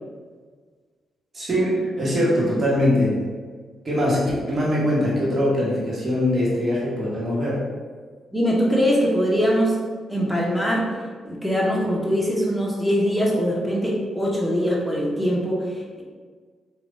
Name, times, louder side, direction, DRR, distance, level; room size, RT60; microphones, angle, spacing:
voice 1, 1.3-3.2 3.8-7.7, left 1 dB, 40° right, -6 dB, 1.1 m, -22 dB
voice 2, 8.3-9.8 10.1-10.9 11.2-16.0, equal, ahead, -4 dB, 0.8 m, -22 dB
3.1 x 2.2 x 2.5 m, 1.5 s
hypercardioid pair, 45°, 0 cm